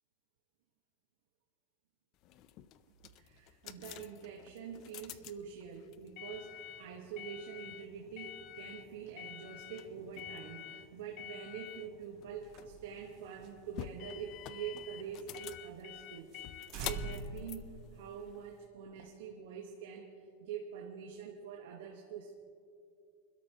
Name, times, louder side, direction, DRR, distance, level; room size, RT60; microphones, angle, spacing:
sound 1, 2.2-18.7, left 12 dB, 40° left, 0.5 m, -48 dB
voice 1, 3.1-16.3 16.7-22.4, right 7 dB, 75° right, 1 dB, 1.3 m, -45 dB
sound 2, 12.4-15.2 15.6-15.7 16.0-16.1 16.3-16.5 16.7-18.4, right 4 dB, 45° right, 1.0 m, -45 dB
25.5 x 12.5 x 2.9 m, 2.5 s
supercardioid pair, 150°, 0 cm